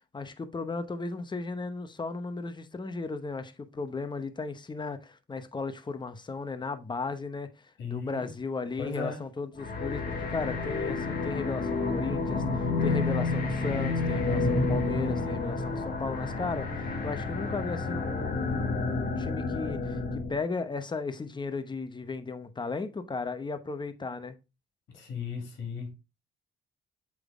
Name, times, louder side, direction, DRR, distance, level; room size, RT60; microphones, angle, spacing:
voice 1, 0.1-24.4, left 4 dB, 25° left, 0.9 m, -35 dB
voice 2, 7.8-8.3 8.8-9.2 24.9-25.9, left 5 dB, 65° left, 2.7 m, -36 dB
sound 1, 9.6-20.4, left 3 dB, 50° left, 1.8 m, -30 dB
7.5 x 3.8 x 3.6 m
cardioid pair, 90°, 20 cm